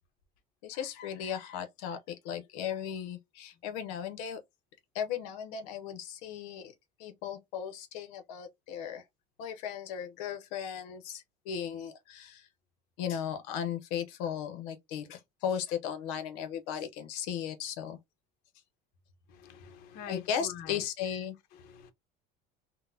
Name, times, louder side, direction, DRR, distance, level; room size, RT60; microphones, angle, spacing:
voice 1, 0.6-4.4 4.9-6.7 7.0-9.0 9.4-12.5 13.0-18.0 20.1-21.3, left 8 dB, 85° left, 0.7 m, -36 dB
voice 2, 19.3-20.8 21.5-21.9, left 7 dB, 55° left, 0.7 m, -45 dB
3.9 x 2.1 x 2.6 m
cardioid pair, 170°, 19 cm